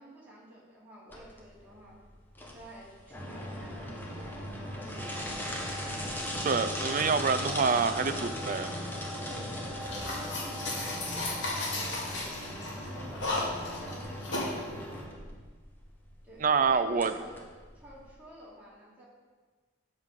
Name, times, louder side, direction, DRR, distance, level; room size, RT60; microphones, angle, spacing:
voice 1, 0.0-1.9 2.5-5.9 9.2-15.1 16.2-17.4 17.7-19.1, equal, 10° right, -7 dB, 3.1 m, -50 dB
sound 1, 1.1-18.1, equal, 10° left, 1.3 m, -38 dB
voice 2, 6.4-8.7 16.4-17.1, right 5 dB, 40° right, 10 dB, 0.5 m, -26 dB
sound 2, 9.8-14.6, left 2 dB, 65° left, 2.6 m, -34 dB
13.0 x 5.3 x 5.4 m, 1.4 s
head